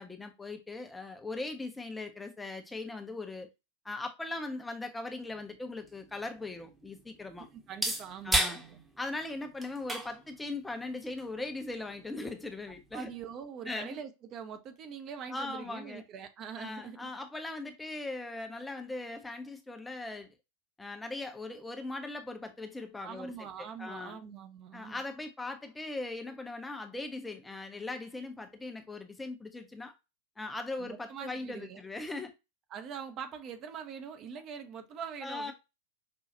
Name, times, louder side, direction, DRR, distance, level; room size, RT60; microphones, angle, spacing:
voice 1, 0.0-3.5 3.8-7.5 8.2-8.6 9.0-13.1 13.7-14.0 15.3-16.0 16.6-20.3 20.8-24.2 24.7-29.9 30.4-32.3 35.2-35.5, left 2 dB, 10° left, 0.5 m, -39 dB
sound 1, 5.3-13.3, right 1 dB, 10° right, 0.9 m, -38 dB
voice 2, 7.7-8.8 12.9-17.1 23.0-25.0 30.8-31.8 32.7-35.5, right 7 dB, 35° right, 0.6 m, -43 dB
5.2 x 2.3 x 2.6 m
figure-of-eight pair, 90°, 0 cm